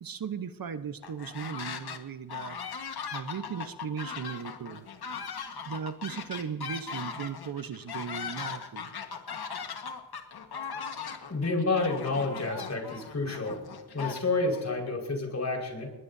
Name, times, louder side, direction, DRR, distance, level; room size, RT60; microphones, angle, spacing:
voice 1, 0.0-2.6 3.1-4.9 5.7-9.0, right 7 dB, 60° right, 10 dB, 1.1 m, -37 dB
sound 1, 1.0-2.0 2.3-14.6, left 6 dB, 70° left, 1.6 m, -39 dB
voice 2, 11.3-13.6 13.9-15.9, left 3 dB, 40° left, 0 dB, 5.2 m, -29 dB
20.5 x 20.5 x 2.8 m, 1.2 s
cardioid pair, 85°, 40 cm